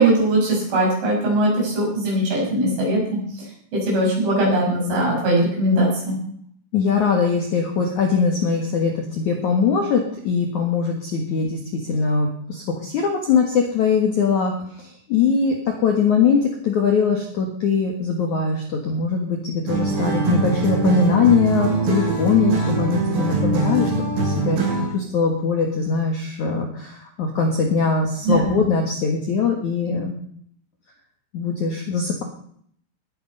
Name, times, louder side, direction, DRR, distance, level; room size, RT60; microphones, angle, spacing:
voice 1, 0.0-3.4 3.7-6.2 28.2-28.6, right 1 dB, 65° right, -4 dB, 9.0 m, -20 dB
voice 2, 6.7-23.9 24.2-30.1 31.3-32.2, left 5 dB, 65° left, 2 dB, 2.0 m, -21 dB
sound 1, 19.7-25.0, right 3 dB, 80° right, 6.1 m, -22 dB
19.5 x 9.4 x 5.5 m, 0.64 s
omnidirectional pair, 5.9 m